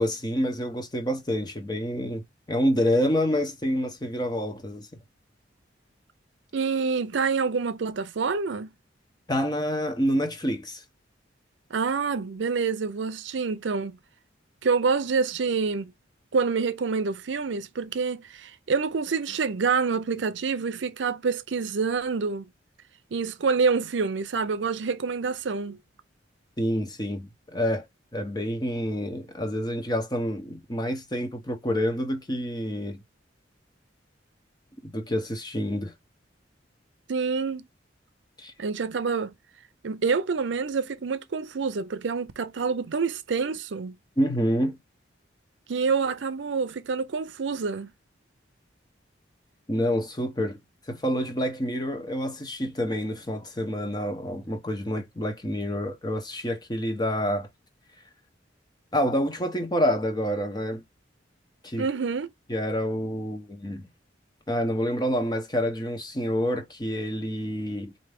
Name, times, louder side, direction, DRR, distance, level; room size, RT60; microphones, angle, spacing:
voice 1, 0.0-4.9 9.3-10.8 26.6-27.9 28.1-33.0 34.8-35.9 38.4-38.5 44.2-44.8 49.7-50.6 50.9-57.5 58.9-60.8 61.6-61.9 62.5-63.9 64.5-67.9, equal, 20° left, 0.9 m, -28 dB
voice 2, 6.5-8.7 11.7-14.0 14.6-15.9 16.3-22.5 23.1-25.8 37.1-37.7 38.6-39.3 39.8-44.0 45.7-47.9 61.8-62.3, right 5 dB, 75° right, 0.5 m, -27 dB
4.4 x 2.7 x 3.4 m
head